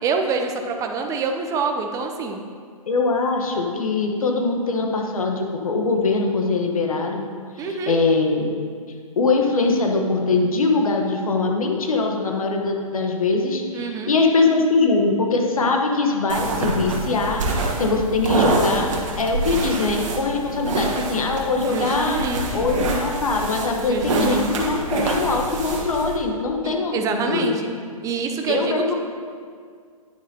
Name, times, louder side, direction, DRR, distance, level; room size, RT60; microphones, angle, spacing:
voice 1, 0.0-2.4 7.6-8.0 13.7-14.1 21.6-22.7 23.8-24.5 26.6-27.7 28.0-28.9, right 4 dB, 20° right, 4 dB, 0.6 m, -26 dB
voice 2, 2.9-7.3 7.6-8.5 9.2-22.2 22.5-27.6 28.5-28.9, left 3 dB, 70° left, 2 dB, 1.3 m, -22 dB
sound 1, 16.3-26.2, right 2 dB, 60° right, 1.5 m, -26 dB
9.5 x 9.1 x 2.9 m, 2.1 s
figure-of-eight pair, 120°, 18 cm